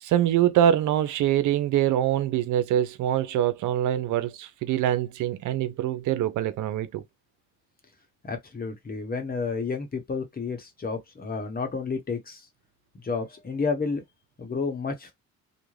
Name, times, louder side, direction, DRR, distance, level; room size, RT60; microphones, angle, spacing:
voice 1, 0.0-7.0, right 11 dB, 75° right, 0.6 m, -24 dB
voice 2, 8.2-12.4 12.9-14.0 14.4-15.1, left 4 dB, 30° left, 0.9 m, -31 dB
2.4 x 2.1 x 3.1 m
cardioid pair, 90°, 30 cm